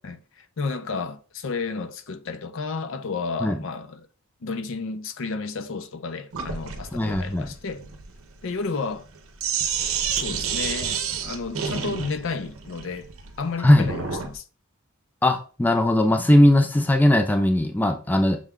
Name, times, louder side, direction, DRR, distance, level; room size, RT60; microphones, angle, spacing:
voice 1, 0.0-4.1 4.4-7.8 8.4-9.1 10.1-13.1 13.4-14.4, left 4 dB, 65° left, 0.5 m, -32 dB
Sink (filling or washing), 6.3-14.3, right 7 dB, 85° right, 0.6 m, -30 dB
voice 2, 6.9-7.5 13.6-13.9 15.2-18.4, left 1 dB, 10° left, 0.3 m, -19 dB
6.2 x 2.2 x 3.6 m
head